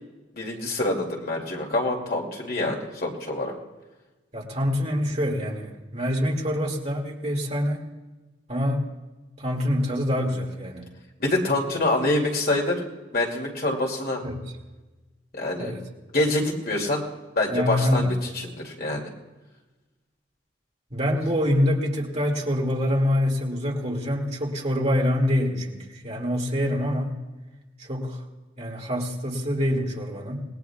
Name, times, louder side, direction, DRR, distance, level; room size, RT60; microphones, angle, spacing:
voice 1, 0.3-3.5 11.2-12.8 13.1-14.2 15.3-15.7 16.1-17.1 17.3-18.1 18.3-19.1, left 2 dB, 50° left, 0 dB, 2.6 m, -26 dB
voice 2, 4.3-7.8 8.5-8.9 9.4-10.9 14.2-14.4 15.6-15.8 17.5-18.1 20.9-27.1 27.8-28.2 28.6-30.4, left 1 dB, 35° right, -1 dB, 2.2 m, -25 dB
27.5 x 19.5 x 2.4 m, 1.2 s
head